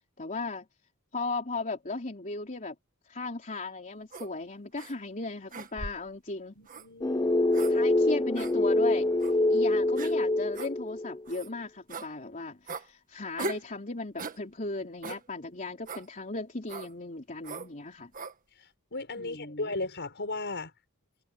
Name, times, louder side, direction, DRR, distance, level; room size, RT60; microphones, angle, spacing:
voice 1, 0.2-0.7 1.1-2.8 3.1-6.5 7.6-9.1 9.5-18.1 19.2-19.7, left 3 dB, 35° left, 3.6 m, -37 dB
sound 1, 4.1-4.3 4.8-4.9 5.5-6.1 6.7-6.9 7.5-7.7 8.4-8.5 9.2-9.3 10.0-10.1 10.5-10.7 11.3-11.5 11.9-12.1 12.7-12.9 13.4-13.7 14.2-14.4 15.0-15.2 15.9-16.1 16.7-16.9 17.4-17.7 18.1-18.3, right 3 dB, 40° right, 1.6 m, -38 dB
voice 2, 6.6-7.4 18.9-20.7, left 2 dB, 55° left, 6.3 m, -36 dB
sound 2, 7.0-11.2, left 2 dB, 15° left, 0.5 m, -25 dB
head